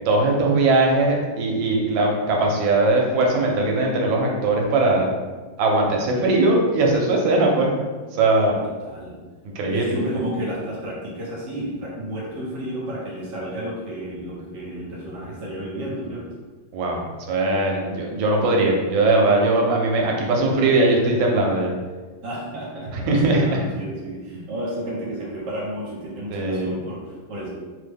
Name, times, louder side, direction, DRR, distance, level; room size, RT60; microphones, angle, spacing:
voice 1, 0.0-5.1 5.6-7.8 8.1-8.6 9.6-10.0 16.7-17.0 17.3-21.7 23.1-23.5 26.3-26.7, right 2 dB, 85° right, 0 dB, 1.4 m, -20 dB
voice 2, 8.5-9.2 9.7-16.2 22.2-27.5, right 1 dB, 70° right, -5 dB, 1.3 m, -32 dB
3.4 x 2.1 x 3.4 m, 1.4 s
omnidirectional pair, 2.1 m